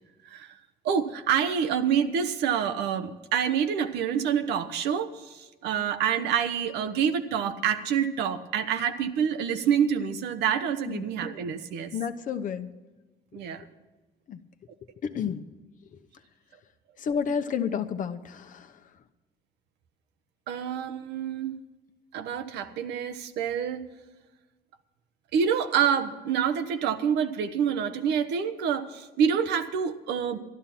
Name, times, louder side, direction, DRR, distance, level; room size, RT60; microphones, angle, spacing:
voice 1, 0.8-11.9 13.3-13.6 20.5-21.6 22.1-23.8 25.3-30.4, right 8 dB, 85° right, 9 dB, 1.0 m, -27 dB
voice 2, 11.9-12.7 14.3-14.4 15.0-15.5 17.0-18.8, left 7 dB, 50° left, 8 dB, 0.9 m, -30 dB
13.0 x 11.5 x 5.9 m, 1.2 s
cardioid pair, 110°, 17 cm